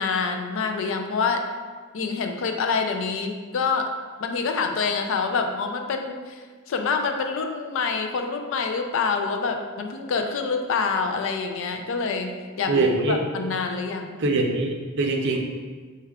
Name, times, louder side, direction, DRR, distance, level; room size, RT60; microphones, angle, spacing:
voice 1, 0.0-1.4 1.9-3.9 4.2-14.2, left 5 dB, 60° left, 5 dB, 0.4 m, -26 dB
voice 2, 12.7-13.2 14.2-15.4, right 2 dB, 55° right, 1 dB, 0.5 m, -23 dB
4.6 x 2.2 x 3.4 m, 1.5 s
head